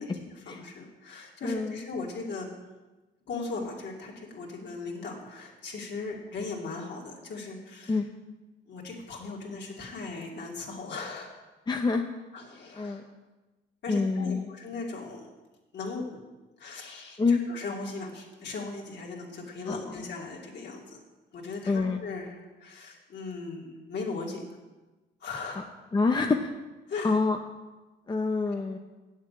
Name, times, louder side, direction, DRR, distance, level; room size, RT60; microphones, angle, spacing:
voice 1, 0.0-2.6 3.3-8.0 8.7-11.3 12.3-13.0 13.8-15.3 15.7-16.2 16.6-21.0 21.3-24.4 25.2-25.6 26.9-27.2, left 3 dB, 60° left, -1 dB, 2.8 m, -38 dB
voice 2, 1.4-1.8 7.9-8.1 11.7-12.0 12.8-13.0 13.9-14.5 17.2-17.4 19.7-20.0 21.7-22.0 25.6-25.7 25.9-26.5 27.0-27.4 28.1-28.8, left 4 dB, 20° left, 4 dB, 0.8 m, -26 dB
8.2 x 7.4 x 8.7 m, 1.2 s
cardioid pair, 90°, 20 cm